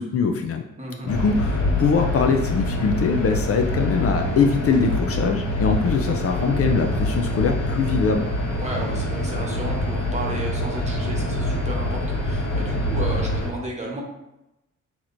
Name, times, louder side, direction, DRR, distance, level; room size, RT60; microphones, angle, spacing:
voice 1, 0.0-0.6 1.1-8.3, left 5 dB, 50° left, 4 dB, 0.5 m, -22 dB
voice 2, 0.8-1.1 8.6-14.0, right 1 dB, 20° right, -2 dB, 1.1 m, -33 dB
sound 1, 1.1-13.5, left 1 dB, 75° left, 1.4 m, -25 dB
5.9 x 3.0 x 2.5 m, 0.90 s
cardioid pair, 105°, 31 cm